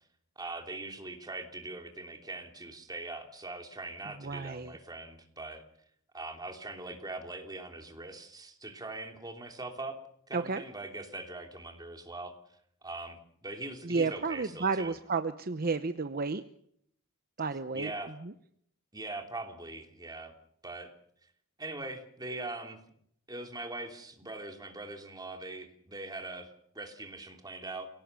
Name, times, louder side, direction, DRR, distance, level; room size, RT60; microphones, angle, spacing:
voice 1, 0.4-5.6 6.1-10.0 10.3-12.3 12.8-14.9 17.7-18.2 18.9-20.3 20.6-20.9 21.6-22.8 23.3-27.9, right 2 dB, 20° right, 4 dB, 3.2 m, -41 dB
voice 2, 4.2-4.8 10.3-10.6 13.8-16.4 17.4-18.3, right 4 dB, 45° right, 10 dB, 0.8 m, -32 dB
28.5 x 17.5 x 7.0 m, 0.70 s
head